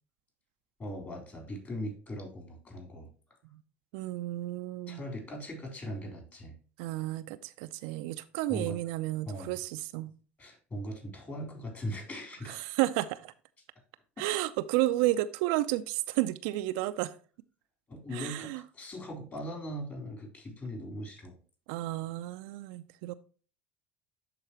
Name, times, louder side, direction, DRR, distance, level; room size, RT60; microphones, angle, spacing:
voice 1, 0.8-3.1 4.9-6.6 8.5-8.8 9.3-9.6 10.4-12.6 14.2-14.3 17.9-21.3, equal, 30° left, 3.5 m, -40 dB
voice 2, 3.9-5.0 6.8-10.1 12.5-13.3 14.2-17.1 18.1-18.6 21.7-23.1, right 16 dB, 65° right, 0.4 m, -32 dB
12.0 x 4.2 x 2.9 m
hypercardioid pair, 70°, 6 cm